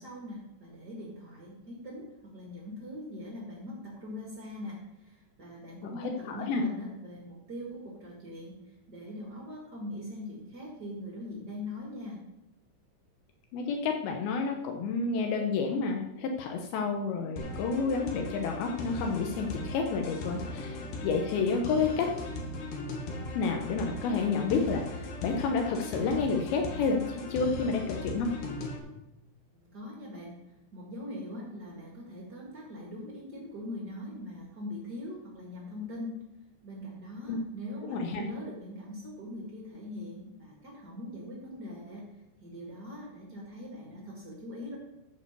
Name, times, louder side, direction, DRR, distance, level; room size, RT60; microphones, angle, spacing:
voice 1, 0.0-12.2 29.7-30.3 30.7-36.2 36.6-42.1 42.4-44.7, left 1 dB, 85° right, -3 dB, 0.8 m, -41 dB
voice 2, 5.8-6.6 13.5-22.1 23.4-28.3 37.3-37.4 37.9-38.2, left 4 dB, 85° left, 3 dB, 2.1 m, -30 dB
sound 1, 17.4-28.8, left 2 dB, 65° left, 3.4 m, -38 dB
14.0 x 5.3 x 6.8 m, 0.96 s
omnidirectional pair, 5.7 m